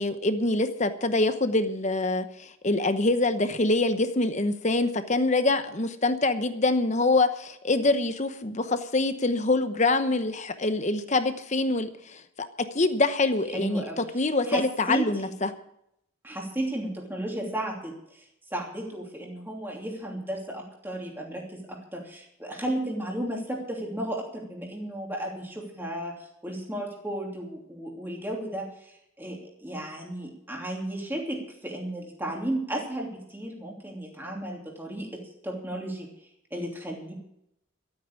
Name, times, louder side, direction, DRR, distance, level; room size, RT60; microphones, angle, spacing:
voice 1, 0.0-15.5, left 2 dB, 35° left, 10 dB, 0.9 m, -25 dB
voice 2, 13.5-14.0 14.5-15.3 16.2-18.2 18.5-26.1 26.4-36.1 36.5-37.1, right 1 dB, 10° right, -1 dB, 2.9 m, -34 dB
13.0 x 9.0 x 8.4 m, 0.78 s
head